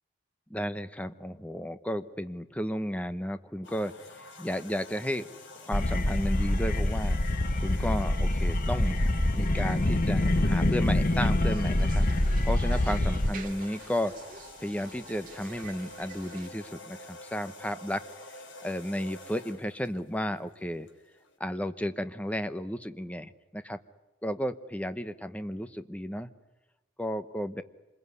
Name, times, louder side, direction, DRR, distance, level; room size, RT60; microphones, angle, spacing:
voice 1, 0.5-3.9 4.4-5.3 5.6-7.2 7.6-9.0 9.3-14.1 14.6-18.0 18.6-20.9 21.4-23.8 24.2-26.3 27.0-27.6, equal, 5° left, 10 dB, 0.9 m, -33 dB
sound 1, 3.6-21.4, left 2 dB, 70° left, 4.0 m, -48 dB
sound 2, 5.7-13.3, left 1 dB, 45° left, 1.2 m, -25 dB
sound 3, 11.4-16.5, right 4 dB, 45° right, 2.3 m, -48 dB
26.5 x 22.0 x 9.7 m, 1.1 s
head